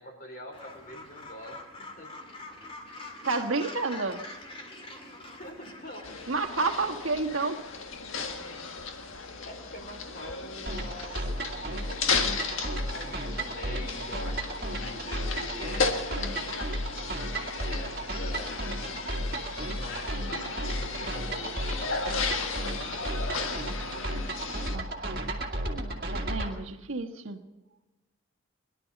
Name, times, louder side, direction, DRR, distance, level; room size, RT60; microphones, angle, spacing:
voice 1, 0.0-2.1 5.4-6.2 9.4-16.4 17.0-19.0 19.6-22.2 22.6-23.4, left 1 dB, 45° left, 3 dB, 3.8 m, -45 dB
Gull seagull, 0.5-6.3, left 2 dB, 25° left, 2.3 m, -44 dB
voice 2, 3.2-4.2 6.3-7.6 24.7-25.3 26.1-27.4, right 3 dB, 80° right, 4 dB, 1.5 m, -30 dB
sound 1, 6.0-24.8, left 4 dB, 75° left, 1.6 m, -35 dB
sound 2, 10.7-26.5, right 1 dB, 45° right, 2.1 m, -34 dB
22.0 x 12.0 x 5.3 m, 1.1 s
head